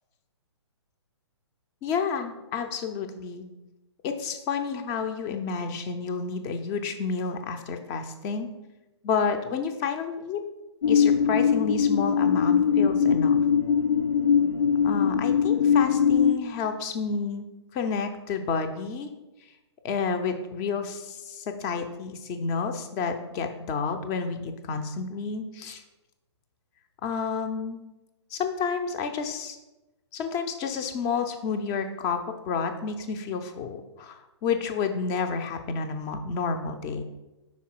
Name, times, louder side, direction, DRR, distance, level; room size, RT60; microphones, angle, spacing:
voice 1, 1.8-3.5 4.0-8.5 9.0-10.4 10.9-13.4 14.8-17.4 17.7-19.1 19.8-25.8 27.0-27.8 28.3-29.6 30.1-32.2 32.5-37.0, left 5 dB, 20° left, 6 dB, 0.5 m, -30 dB
sound 1, 10.8-16.3, left 7 dB, 70° left, 0.5 m, -21 dB
5.6 x 4.1 x 4.5 m, 1.0 s
figure-of-eight pair, 125°, 15 cm